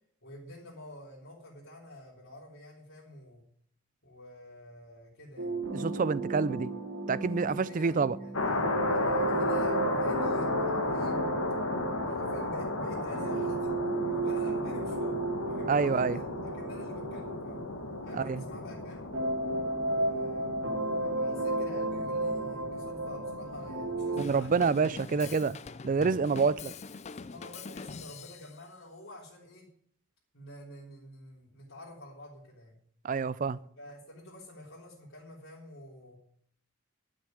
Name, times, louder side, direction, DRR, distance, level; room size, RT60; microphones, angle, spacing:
voice 1, 0.2-3.4 4.0-5.6 7.1-11.2 12.0-17.6 18.0-19.1 19.9-24.6 25.1-25.4 26.2-26.7 27.1-29.7 30.3-32.8 33.8-36.2, left 1 dB, 65° left, 3.5 m, -49 dB
sound 1, 5.4-18.7 19.1-24.2, right 2 dB, 65° right, 2.1 m, -33 dB
voice 2, 5.7-6.7 7.1-8.2 15.7-16.2 18.2-18.4 24.2-25.5 25.8-26.7 33.0-33.6, right 5 dB, 40° right, 0.4 m, -27 dB
sound 2, 8.3-24.9, left 2 dB, 80° left, 1.7 m, -35 dB
Drum kit / Drum, 24.2-28.6, left 4 dB, 30° left, 0.4 m, -44 dB
11.5 x 6.4 x 9.1 m
head